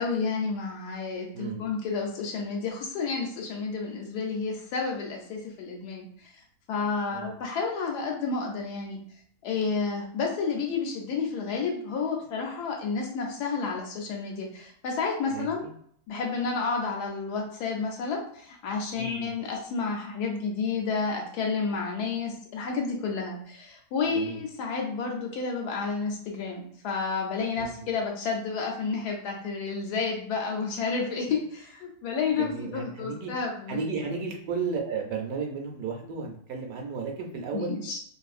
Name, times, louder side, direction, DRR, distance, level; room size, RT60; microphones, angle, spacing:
voice 1, 0.0-6.1 6.7-9.0 9.4-15.7 16.1-34.2 37.5-38.0, left 4 dB, 85° left, 0 dB, 1.2 m, -30 dB
voice 2, 1.3-1.7 7.1-7.3 15.3-15.5 18.9-19.3 24.1-24.4 27.6-27.9 32.4-33.3 33.7-37.8, right 5 dB, 75° right, 1 dB, 1.0 m, -33 dB
2.9 x 2.6 x 2.4 m, 0.63 s
omnidirectional pair, 1.7 m